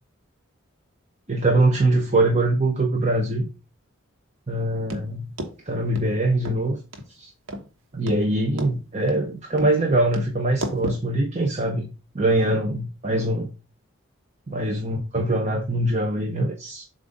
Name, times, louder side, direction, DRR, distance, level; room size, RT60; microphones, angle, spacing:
voice 1, 1.3-3.5 4.5-5.3 5.7-6.8 7.2-7.3 7.9-13.5 14.5-16.8, right 2 dB, 35° right, 0.8 m, -23 dB
sound 1, 4.9-5.0 5.4-5.5 6.0-6.1 6.4-6.6 6.9-7.0 7.5-7.7 8.1-8.2 8.6-8.7 9.1-9.3 9.6-9.7 10.1-10.3 10.6-11.0, equal, 80° right, 1.2 m, -31 dB
7.4 x 2.6 x 5.1 m
head